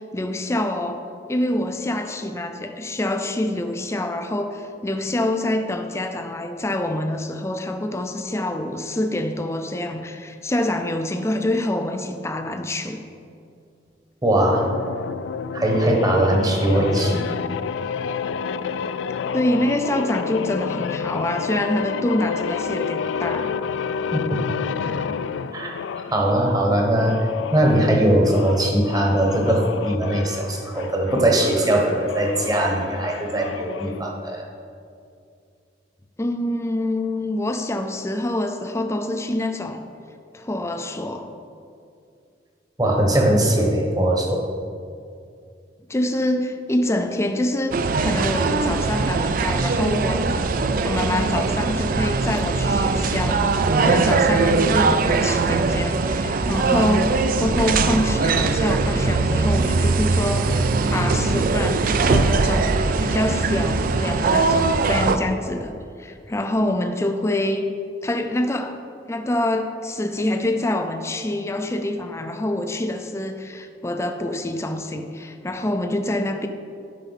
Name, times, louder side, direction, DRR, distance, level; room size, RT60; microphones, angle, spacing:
voice 1, 0.0-13.0 19.3-23.5 36.2-39.8 40.3-41.3 45.9-50.2 50.6-60.6 60.9-67.7 68.0-68.8 69.1-76.5, left 1 dB, 15° left, 6 dB, 0.4 m, -26 dB
voice 2, 14.2-14.7 15.5-17.3 24.1-24.5 25.5-25.7 26.1-34.5 42.8-44.4, right 1 dB, 20° right, 0 dB, 1.1 m, -20 dB
sound 1, 14.5-26.2 26.9-34.0, left 6 dB, 80° left, 0.3 m, -30 dB
sound 2, 47.7-65.2, right 3 dB, 50° right, 0.4 m, -21 dB
12.0 x 5.5 x 4.1 m, 2.4 s
head